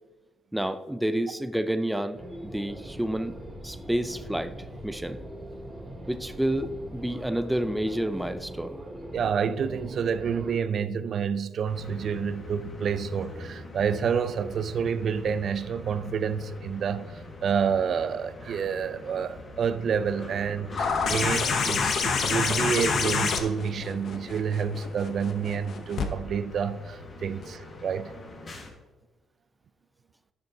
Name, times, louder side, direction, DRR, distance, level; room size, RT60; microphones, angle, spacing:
voice 1, 0.5-3.4 3.6-4.5 4.8-5.2 6.1-8.8, right 1 dB, 5° right, 0.5 m, -29 dB
sound 1, 2.2-10.6, right 1 dB, 20° right, 2.5 m, -41 dB
voice 2, 9.1-28.1, right 7 dB, 60° right, 0.4 m, -29 dB
sound 2, 11.7-28.7, left 2 dB, 40° left, 1.5 m, -44 dB
sound 3, 20.8-26.1 27.4-27.5, left 5 dB, 60° left, 0.8 m, -27 dB
10.5 x 6.6 x 2.7 m
cardioid pair, 90°, 0 cm